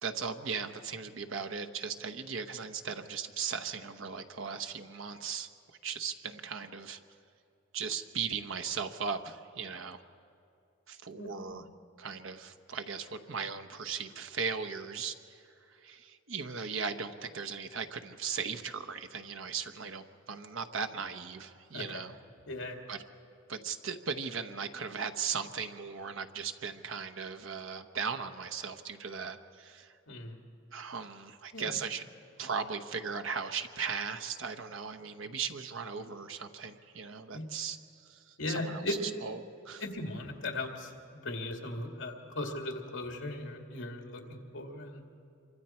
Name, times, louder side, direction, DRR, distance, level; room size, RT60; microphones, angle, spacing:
voice 1, 0.0-5.5 5.8-7.0 7.7-10.0 10.9-11.6 12.0-22.2 22.9-23.0 23.5-29.9 30.7-32.0 32.4-39.4 39.6-39.8, right 6 dB, 80° right, 8 dB, 1.0 m, -38 dB
voice 2, 11.2-11.6 21.7-22.0 22.5-22.8 30.1-30.4 31.5-31.8 37.3-37.5 38.4-39.0 39.8-45.0, left 2 dB, 75° left, 2 dB, 2.3 m, -38 dB
26.5 x 24.5 x 4.4 m, 2.6 s
head